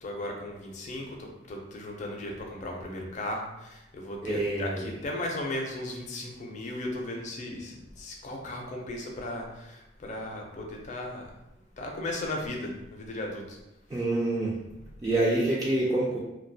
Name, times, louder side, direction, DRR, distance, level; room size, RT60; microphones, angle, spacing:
voice 1, 0.0-11.3 11.8-13.6, left 1 dB, 40° left, 0 dB, 0.5 m, -36 dB
voice 2, 4.2-5.0 13.9-14.6 15.0-16.2, right 2 dB, 20° right, -7 dB, 0.3 m, -27 dB
2.3 x 2.2 x 2.6 m, 0.93 s
head